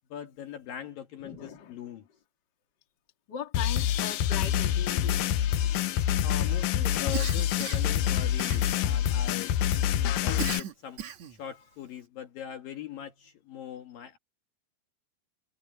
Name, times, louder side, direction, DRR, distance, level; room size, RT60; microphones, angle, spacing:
voice 1, 0.1-2.1 6.2-11.0 11.3-14.2, left 9 dB, 60° left, 2.8 m, -41 dB
voice 2, 1.2-1.8 3.3-5.3, left 8 dB, 35° left, 2.1 m, -39 dB
sound 1, 3.5-10.6, left 10 dB, 80° left, 2.0 m, -26 dB
Cough, 7.1-8.0 8.4-9.0 10.4-11.4, right 11 dB, 55° right, 2.1 m, -37 dB
omnidirectional pair, 5.1 m